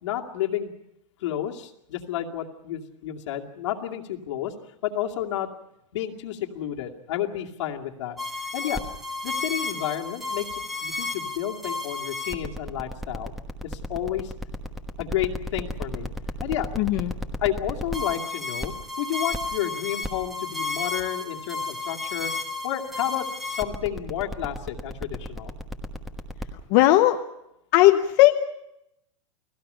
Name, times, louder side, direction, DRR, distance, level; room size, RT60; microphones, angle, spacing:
voice 1, 0.0-0.7 1.2-4.5 4.8-5.5 5.9-8.2 8.5-8.8 9.2-14.3 15.0-16.1 16.4-16.7 17.4-22.3 22.6-25.6, left 11 dB, 60° left, 2 dB, 2.5 m, -31 dB
sound 1, 8.2-26.5, left 2 dB, ahead, 1.2 m, -32 dB
voice 2, 16.8-17.1 26.7-27.2 27.7-28.3, left 16 dB, 35° left, 7 dB, 0.8 m, -17 dB
30.0 x 18.5 x 5.6 m, 0.84 s
supercardioid pair, 175°, 17 cm